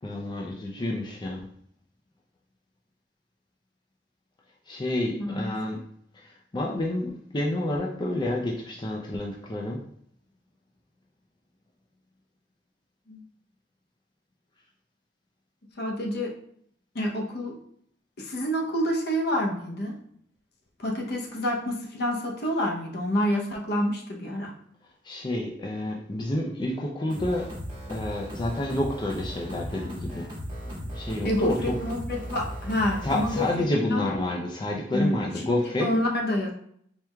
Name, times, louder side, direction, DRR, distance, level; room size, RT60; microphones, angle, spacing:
voice 1, 0.0-1.5 4.7-5.8 6.1-9.8 25.0-27.5 27.9-30.3 30.6-31.8 33.0-35.9, left 1 dB, 25° left, -1 dB, 0.4 m, -29 dB
voice 2, 5.2-5.5 13.1-13.2 15.8-16.3 16.9-17.6 18.2-20.0 20.8-24.5 31.2-34.0 34.9-35.2 35.8-36.5, equal, 60° left, 0 dB, 0.8 m, -28 dB
sound 1, 27.1-33.5, equal, 25° right, 1.5 m, -37 dB
4.5 x 3.4 x 2.3 m, 0.67 s
head